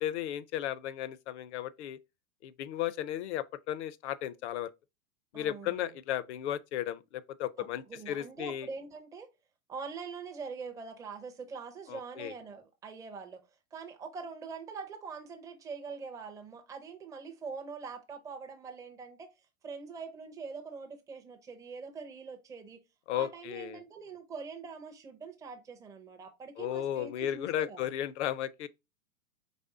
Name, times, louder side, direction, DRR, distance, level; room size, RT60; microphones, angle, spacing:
voice 1, 0.0-2.0 2.4-4.7 5.3-8.7 11.9-12.3 23.1-23.8 26.6-28.7, left 11 dB, 55° left, 0.5 m, -35 dB
voice 2, 5.3-5.9 7.9-9.3 9.7-13.4 13.7-19.3 19.6-22.8 23.1-27.9, right 5 dB, 10° right, 0.4 m, -43 dB
4.2 x 3.1 x 3.5 m
hypercardioid pair, 115°, 42 cm